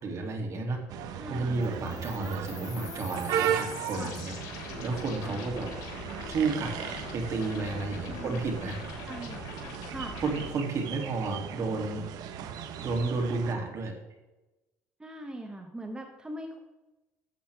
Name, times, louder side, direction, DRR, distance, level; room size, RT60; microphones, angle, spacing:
voice 1, 0.0-4.4 4.8-5.7 6.3-8.8 10.2-12.0 12.8-13.9, right 3 dB, 45° right, 3 dB, 2.7 m, -32 dB
sound 1, 0.9-13.5, right 9 dB, 65° right, 1.1 m, -37 dB
voice 2, 1.2-1.6 4.0-4.1 5.2-5.4 8.0-8.4 9.1-9.4 9.9-10.2 15.0-16.6, right 1 dB, 10° right, 3 dB, 1.3 m, -41 dB
sound 2, 1.6-10.5, left 5 dB, 65° left, 3.2 m, -44 dB
Piano, 1.7-8.5, left 5 dB, 80° left, 2.5 m, -48 dB
13.0 x 8.5 x 3.5 m, 1.0 s
supercardioid pair, 100°, 7 cm